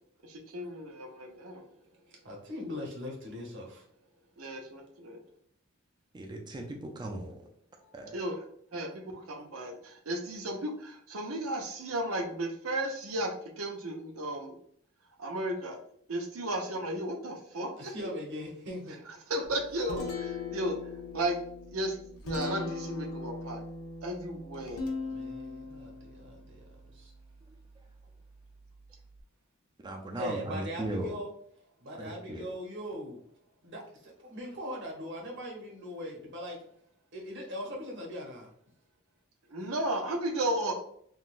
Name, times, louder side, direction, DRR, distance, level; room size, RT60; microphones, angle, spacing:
voice 1, 0.2-1.7 4.4-5.2 8.1-8.4 8.7-14.6 15.2-15.8 16.1-17.9 19.3-20.8 21.1-21.4 21.7-22.0 22.2-23.6 24.0-24.8 39.5-40.8, right 1 dB, 90° right, 3 dB, 0.7 m, -34 dB
voice 2, 2.2-3.8 7.8-7.9 17.8-19.0 24.5-27.1 30.2-31.3 31.8-33.2 33.6-36.6 37.1-38.5, equal, 60° right, -1 dB, 0.9 m, -41 dB
voice 3, 6.1-7.5 7.9-8.2 27.5-27.6 29.8-31.2 31.9-32.5, right 1 dB, 20° right, 2 dB, 0.4 m, -37 dB
Guitar, 19.4-29.2, left 3 dB, 85° left, 0.6 m, -40 dB
3.8 x 2.2 x 2.4 m, 0.66 s
head